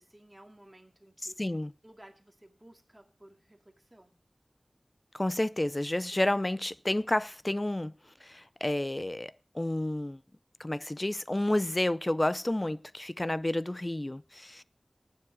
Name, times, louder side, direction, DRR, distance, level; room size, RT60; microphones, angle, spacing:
voice 1, 0.0-1.4 1.8-4.2, right 1 dB, 20° right, 2.2 m, -56 dB
voice 2, 1.4-1.7 5.1-7.9 8.2-10.2 10.6-14.6, left 1 dB, 30° left, 0.5 m, -30 dB
19.0 x 7.2 x 4.8 m
wide cardioid pair, 50°, 0 cm